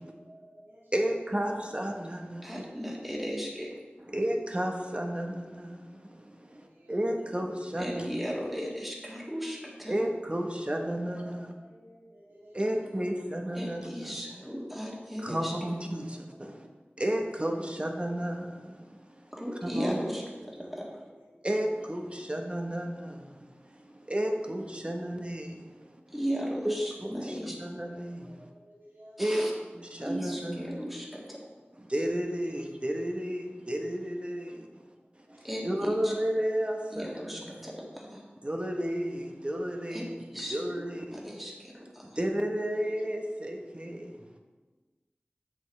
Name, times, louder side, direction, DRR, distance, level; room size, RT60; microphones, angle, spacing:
voice 1, 0.0-1.3 2.2-2.3 6.4-7.0 7.4-7.5 10.9-13.2 14.8-16.1 16.3-16.6 20.8-21.7 22.0-22.1 23.8-24.8 25.6-25.7 27.5-29.5 29.7-29.8 30.2-30.6 32.3-32.6 33.4-33.5 34.1-35.5 42.7-42.8, equal, 65° right, -8 dB, 2.5 m, -57 dB
voice 2, 0.9-2.6 4.0-8.1 9.9-11.5 12.5-14.2 15.2-16.7 17.0-19.3 19.6-20.0 20.6-20.7 21.4-26.2 26.6-28.5 29.2-29.5 29.7-30.8 31.8-37.7 38.4-41.4 42.0-44.4, equal, 30° right, 2 dB, 1.1 m, -33 dB
voice 3, 2.4-3.7 7.8-9.9 13.5-15.5 19.3-20.2 20.5-20.9 26.1-27.6 29.2-29.5 30.0-31.5 35.4-36.1 36.9-38.2 39.9-40.6 41.1-42.1, equal, 5° right, -3 dB, 1.8 m, -36 dB
7.9 x 7.7 x 3.2 m, 1.3 s
wide cardioid pair, 45°, 4 cm